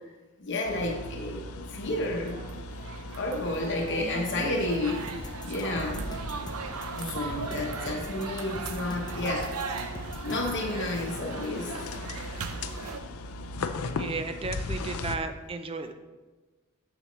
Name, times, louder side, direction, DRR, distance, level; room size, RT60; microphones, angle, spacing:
voice 1, 0.4-1.4 1.7-2.4 3.2-5.0 5.4-6.0 6.9-9.5 10.2-11.7, left 2 dB, 55° left, 0 dB, 0.9 m, -31 dB
sound 1, 0.6-15.2, left 2 dB, 80° left, 0.5 m, -38 dB
sound 2, 2.2-13.0, right 5 dB, 90° right, 0.6 m, -39 dB
voice 2, 4.0-4.5 14.0-15.9, right 3 dB, 25° right, 8 dB, 0.4 m, -35 dB
sound 3, 5.1-10.6, left 1 dB, 20° left, 0.7 m, -42 dB
7.1 x 6.9 x 3.1 m, 1.2 s
head